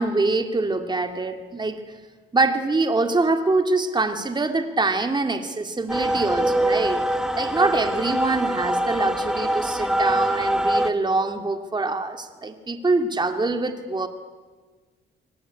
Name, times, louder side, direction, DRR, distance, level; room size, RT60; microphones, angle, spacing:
voice 1, 0.0-2.0 2.3-14.1, right 3 dB, 20° right, 7 dB, 2.2 m, -24 dB
sound 1, 5.9-10.9, right 1 dB, 5° right, 1.4 m, -24 dB
23.0 x 20.0 x 9.8 m, 1.4 s
cardioid pair, 90°, 20 cm